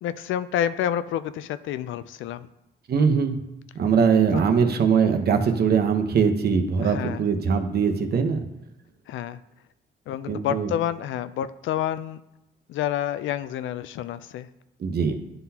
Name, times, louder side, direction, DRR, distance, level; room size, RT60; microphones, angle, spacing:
voice 1, 0.0-2.5 4.3-4.4 6.8-7.2 9.1-9.4 10.1-12.2 12.7-14.5, left 10 dB, 75° left, 14 dB, 0.4 m, -29 dB
voice 2, 2.9-3.4 3.7-8.5 10.3-10.7 14.8-15.2, right 6 dB, 55° right, 5 dB, 0.9 m, -21 dB
11.0 x 3.9 x 2.8 m, 0.91 s
cardioid pair, 90°, 20 cm